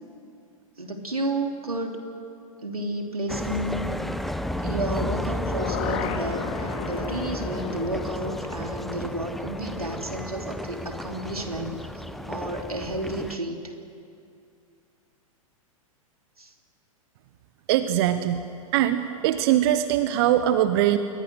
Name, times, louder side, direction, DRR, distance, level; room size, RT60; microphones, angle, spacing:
voice 1, 0.8-2.0 2.6-3.8 4.6-11.8 12.3-13.7 16.4-16.5, right 1 dB, 85° right, 3 dB, 3.2 m, -31 dB
sound 1, 3.3-13.4, left 1 dB, ahead, 0.9 m, -32 dB
sound 2, 4.9-11.0 11.3-11.4, left 8 dB, 40° left, 2.0 m, -37 dB
voice 2, 17.7-18.4 18.7-21.0, right 12 dB, 45° right, 11 dB, 1.1 m, -22 dB
28.5 x 22.5 x 6.5 m, 2.5 s
figure-of-eight pair, 100°, 18 cm